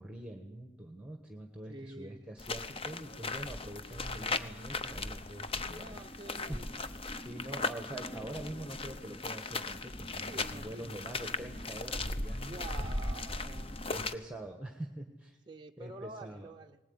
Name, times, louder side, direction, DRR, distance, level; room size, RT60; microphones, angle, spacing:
voice 1, 0.0-6.6 7.2-12.9 13.9-15.4 15.8-16.5, right 1 dB, 5° right, 5 dB, 1.3 m, -45 dB
voice 2, 1.7-2.2 5.8-6.9 10.3-11.1 12.4-13.8 15.5-16.8, right 2 dB, 20° right, 1 dB, 0.7 m, -48 dB
sound 1, 2.4-14.1, left 3 dB, 25° left, 0.8 m, -38 dB
19.5 x 19.5 x 9.6 m, 1.1 s
head